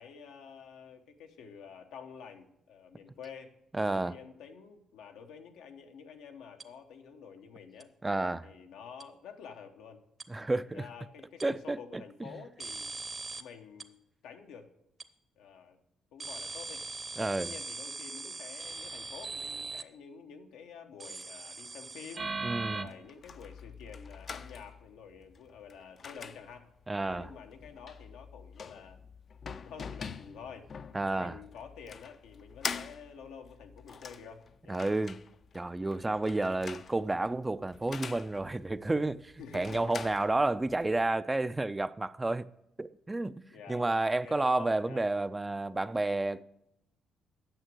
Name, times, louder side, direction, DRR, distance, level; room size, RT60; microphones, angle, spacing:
voice 1, 0.0-7.9 8.4-10.0 10.6-12.9 13.4-14.0 14.2-14.7 15.4-15.8 16.1-16.9 17.4-22.3 22.7-26.7 27.1-29.0 29.6-30.7 31.1-34.9 39.4-40.0 43.5-43.9 44.2-45.1, left 6 dB, 90° left, 0.9 m, -49 dB
voice 2, 3.7-4.1 8.0-8.5 10.3-10.9 11.4-12.0 17.2-17.5 22.4-22.9 26.9-27.3 30.9-31.3 34.7-35.2 35.5-42.5 42.8-46.4, right 2 dB, 15° right, 0.3 m, -31 dB
sound 1, 6.6-6.7 7.8-7.9 9.0-9.1 10.2-10.3 11.4-11.5 12.6-13.4 13.8-13.9 15.0-15.1 16.2-19.8 21.0-22.8, right 3 dB, 35° right, 0.7 m, -39 dB
sound 2, 22.5-41.1, left 6 dB, 50° left, 0.4 m, -45 dB
8.9 x 6.9 x 6.2 m
cardioid pair, 90°, 0 cm